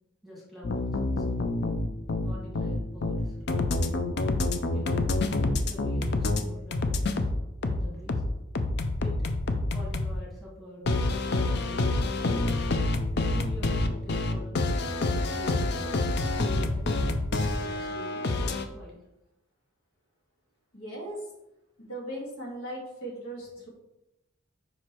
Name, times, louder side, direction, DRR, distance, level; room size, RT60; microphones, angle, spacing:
voice 1, 0.2-1.3 2.2-3.9 4.7-5.2 5.7-6.9 7.6-8.2 9.0-9.3 9.7-12.6 13.3-14.6 15.0-16.9 17.6-19.0, left 1 dB, ahead, -5 dB, 1.7 m, -45 dB
sound 1, 0.6-6.4 6.7-10.1 10.9-18.6, left 2 dB, 50° left, 0.5 m, -27 dB
voice 2, 20.7-21.3 21.8-23.7, right 1 dB, 80° left, -2 dB, 2.1 m, -38 dB
5.2 x 4.8 x 4.5 m, 0.92 s
head